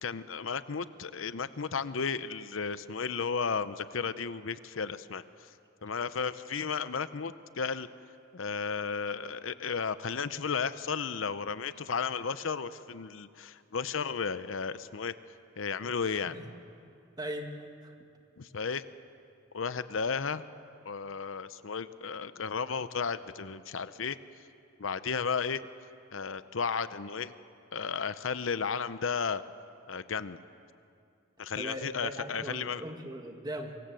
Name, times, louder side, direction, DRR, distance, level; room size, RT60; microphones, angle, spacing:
voice 1, 0.0-5.5 5.8-7.9 8.3-15.1 15.6-16.4 18.4-18.9 19.5-20.4 20.8-24.2 24.8-25.6 26.1-27.3 27.7-29.4 29.9-30.4 31.4-32.8, left 5 dB, 75° left, 14 dB, 0.7 m, -34 dB
voice 2, 16.0-16.5 17.2-17.5 17.8-17.9 31.6-33.8, right 1 dB, 20° right, 4 dB, 2.0 m, -39 dB
25.5 x 22.5 x 7.7 m, 2.4 s
head